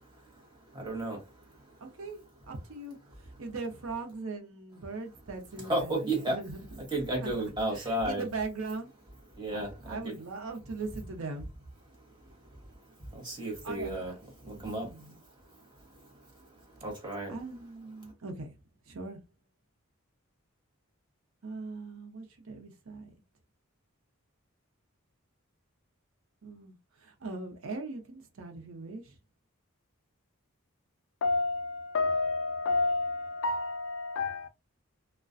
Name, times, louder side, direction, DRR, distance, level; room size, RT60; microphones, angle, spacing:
voice 1, 0.7-1.3 5.7-6.4 6.9-8.2 9.4-10.1 13.1-14.1 14.4-15.2 16.8-17.3, right 1 dB, 20° right, 0.9 m, -33 dB
voice 2, 1.8-2.2 2.5-6.8 7.2-9.0 9.5-11.5 13.4-14.2 14.5-15.2 17.3-18.6 18.8-19.2 21.4-23.1 26.4-29.2, right 3 dB, 75° right, 0.6 m, -40 dB
voice 3, 31.2-34.5, left 3 dB, 60° left, 0.3 m, -30 dB
2.3 x 2.1 x 2.4 m
head